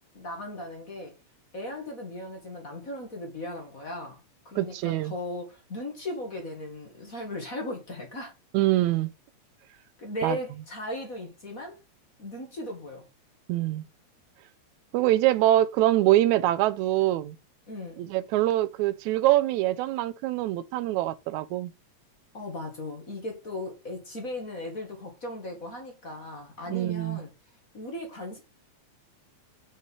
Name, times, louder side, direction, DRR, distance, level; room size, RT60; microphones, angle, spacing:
voice 1, 0.1-1.1 1.5-4.2 4.5-8.3 10.0-11.8 12.2-13.0 17.7-18.1 22.3-27.3 27.7-28.4, left 1 dB, 35° left, 1.9 m, -37 dB
voice 2, 4.6-5.1 8.5-9.1 10.2-10.4 13.5-13.8 14.9-17.4 18.0-21.7 26.7-27.2, right 15 dB, 85° right, 2.0 m, -24 dB
6.4 x 5.3 x 5.5 m
omnidirectional pair, 3.3 m